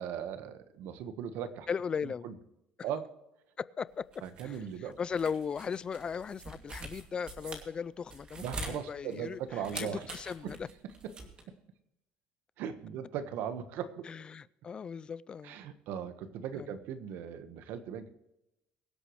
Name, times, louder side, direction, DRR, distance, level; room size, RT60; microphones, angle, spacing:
voice 1, 0.0-1.7 2.0-2.3 2.8-3.1 4.2-4.9 8.4-10.1 10.4-10.5 10.8-11.1 11.5-11.6 12.6-14.1 15.4-18.1, right 8 dB, 70° right, 10 dB, 1.3 m, -38 dB
voice 2, 1.7-2.3 3.6-4.1 4.4-4.6 5.0-10.7 14.1-15.6 16.6-16.7, left 6 dB, 25° left, 19 dB, 0.3 m, -37 dB
sound 1, 3.9-11.4, right 3 dB, 25° right, 2.5 m, -45 dB
23.5 x 8.2 x 3.2 m, 0.90 s
cardioid pair, 140°, 4 cm